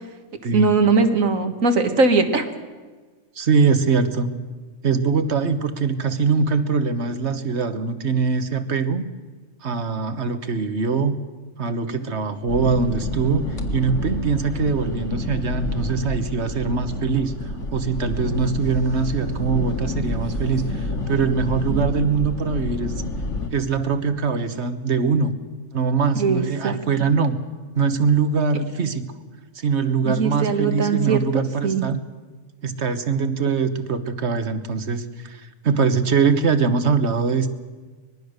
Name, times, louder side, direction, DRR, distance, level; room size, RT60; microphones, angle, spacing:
voice 1, 0.5-2.5 21.7-21.8 26.2-26.8 30.0-31.8, right 4 dB, 70° right, 7 dB, 2.1 m, -20 dB
voice 2, 3.3-4.3 4.8-9.0 9.6-11.2 11.6-22.9 23.5-25.3 25.7-27.4 27.7-29.1 29.5-32.0 32.6-37.5, right 5 dB, 55° right, 10 dB, 1.6 m, -22 dB
sound 1, 12.5-23.5, left 2 dB, 60° left, 2.3 m, -28 dB
24.5 x 21.0 x 6.7 m, 1.4 s
omnidirectional pair, 1.4 m